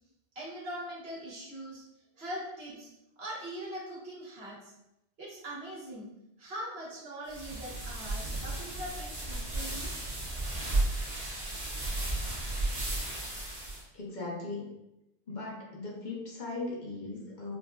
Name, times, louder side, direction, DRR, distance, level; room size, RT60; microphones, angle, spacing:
voice 1, 0.3-1.8 2.1-2.9 3.2-4.7 5.2-6.1 6.4-9.9, equal, 75° right, -7 dB, 1.4 m, -41 dB
sound 1, 7.3-13.8, right 2 dB, 40° right, 1.1 m, -34 dB
voice 2, 13.9-14.8 15.3-17.6, left 3 dB, 50° left, -3 dB, 0.9 m, -38 dB
4.6 x 2.5 x 2.3 m, 0.88 s
omnidirectional pair, 1.0 m